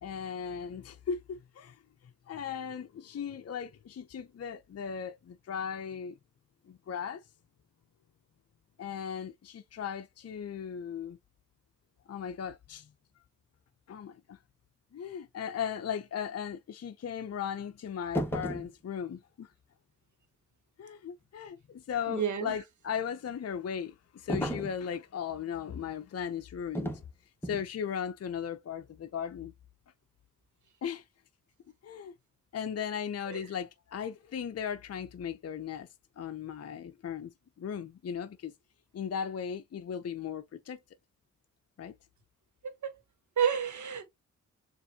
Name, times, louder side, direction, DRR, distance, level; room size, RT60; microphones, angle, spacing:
voice 1, 0.0-1.8 2.3-6.1 6.7-7.2 8.8-11.2 12.1-12.9 13.9-14.4 14.9-19.5 20.8-27.0 27.4-29.5 30.8-31.0 31.8-32.1 32.5-35.9 36.2-38.5 38.9-40.8 41.8-41.9, left 7 dB, 45° left, 0.6 m, -37 dB
sound 1, 18.1-18.7 24.3-24.8 26.7-27.1 27.4-27.7, equal, 5° left, 1.6 m, -33 dB
voice 2, 22.1-22.5 33.3-33.4 42.8-42.9 43.4-44.1, right 7 dB, 55° right, 1.4 m, -30 dB
6.7 x 2.6 x 2.8 m
supercardioid pair, 40°, 34 cm